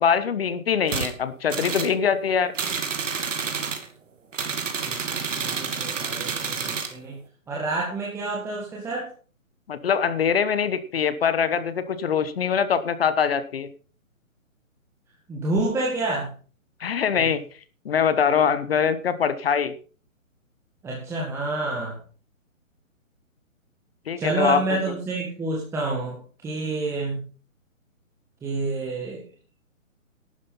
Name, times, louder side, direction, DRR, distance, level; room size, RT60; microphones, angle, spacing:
voice 1, 0.0-2.5 9.7-13.7 16.8-17.4 17.8-19.7 24.1-24.6, left 7 dB, 45° left, 14 dB, 1.2 m, -23 dB
sound 1, 0.9-1.1 1.5-1.9 2.5-3.9 4.3-6.9, right 5 dB, 65° right, 2.8 m, -29 dB
voice 2, 4.8-7.2 7.5-9.1 15.3-16.3 17.2-17.3 20.8-22.0 24.2-27.2 28.4-29.2, right 2 dB, 5° right, -3 dB, 1.9 m, -28 dB
12.0 x 9.6 x 5.6 m, 0.38 s
hypercardioid pair, 155°, 41 cm